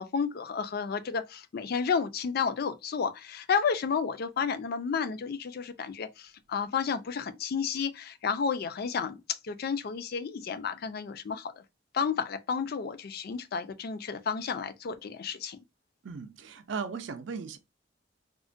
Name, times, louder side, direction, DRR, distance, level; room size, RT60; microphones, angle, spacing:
voice 1, 0.0-9.2 9.4-11.6 11.9-15.6, left 6 dB, 55° left, 0.4 m, -31 dB
voice 2, 16.0-17.6, right 5 dB, 75° right, 0.5 m, -37 dB
3.6 x 2.1 x 2.4 m
head